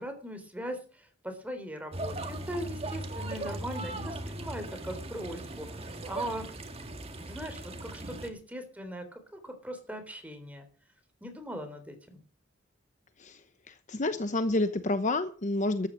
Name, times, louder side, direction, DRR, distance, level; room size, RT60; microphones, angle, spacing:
voice 1, 0.0-5.7 6.0-6.5 7.3-10.6 11.2-12.2, equal, 10° right, 6 dB, 3.5 m, -39 dB
sound 1, 1.9-8.3, right 2 dB, 30° right, 1.8 m, -38 dB
voice 2, 13.7-15.9, left 2 dB, 40° left, 10 dB, 0.9 m, -29 dB
14.0 x 9.8 x 6.4 m, 0.38 s
head